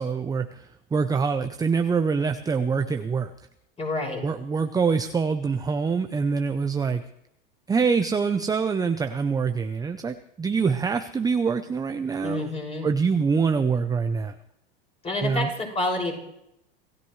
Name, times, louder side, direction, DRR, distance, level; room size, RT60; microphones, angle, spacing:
voice 1, 0.0-3.3 4.2-7.0 7.7-12.5 12.8-14.3 15.2-15.5, right 5 dB, 10° right, 8 dB, 0.7 m, -25 dB
voice 2, 3.8-4.2 12.2-12.9 15.0-16.2, left 2 dB, 20° left, -1 dB, 6.2 m, -28 dB
26.5 x 16.0 x 3.2 m, 0.79 s
supercardioid pair, 120°, 30 cm